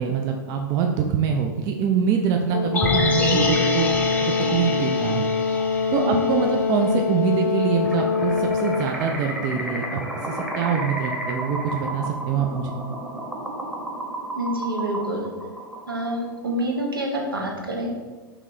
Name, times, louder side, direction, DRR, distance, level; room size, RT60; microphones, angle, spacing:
voice 1, 0.0-3.9 4.2-5.3 5.9-12.8, right 6 dB, 35° right, 3 dB, 0.4 m, -24 dB
Brass instrument, 2.5-8.9, left 5 dB, 70° left, 0.4 m, -24 dB
sound 1, 2.7-6.9 7.3-7.4, left 1 dB, 15° left, 0.7 m, -27 dB
sound 2, 7.8-16.3, right 1 dB, 10° right, 0.9 m, -32 dB
voice 2, 14.3-15.3 15.9-17.9, right 1 dB, 85° right, 0 dB, 0.9 m, -27 dB
4.6 x 3.1 x 3.7 m, 1.3 s
figure-of-eight pair, 100°, 11 cm